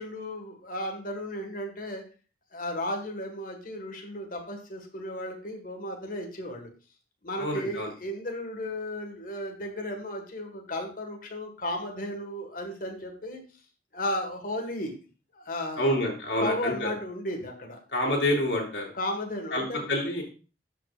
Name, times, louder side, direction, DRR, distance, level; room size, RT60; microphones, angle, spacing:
voice 1, 0.0-2.0 2.5-6.7 7.2-13.4 13.9-14.9 15.3-15.9 16.4-17.8 18.9-19.9, left 1 dB, 50° left, 3 dB, 1.7 m, -34 dB
voice 2, 7.4-7.9 15.8-16.9 17.9-18.9 19.5-20.2, left 1 dB, 80° left, -1 dB, 2.8 m, -27 dB
13.0 x 5.3 x 2.5 m, 0.35 s
head